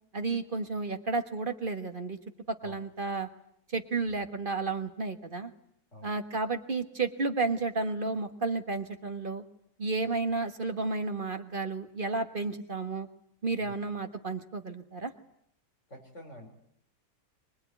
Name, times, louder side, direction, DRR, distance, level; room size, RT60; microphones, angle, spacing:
voice 1, 0.1-2.2 2.5-3.3 3.7-5.5 6.0-9.4 9.8-13.1 13.4-15.1, right 3 dB, 35° right, 7 dB, 1.6 m, -32 dB
voice 2, 15.9-16.5, equal, 50° left, 2 dB, 5.1 m, -47 dB
24.5 x 20.0 x 9.4 m, 0.72 s
omnidirectional pair, 1.6 m